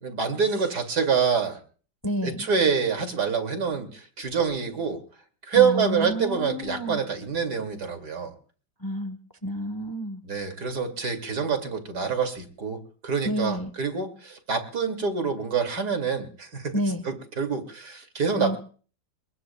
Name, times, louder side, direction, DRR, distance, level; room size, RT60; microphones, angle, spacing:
voice 1, 0.0-1.6 2.2-5.0 5.4-8.3 10.2-16.7 17.0-18.6, right 6 dB, 70° right, 6 dB, 3.0 m, -26 dB
voice 2, 2.0-2.5 5.6-7.0 8.8-10.2 13.2-13.7 16.7-17.0 18.4-18.6, equal, 15° left, 9 dB, 0.8 m, -30 dB
28.0 x 22.0 x 2.3 m, 0.41 s
omnidirectional pair, 1.8 m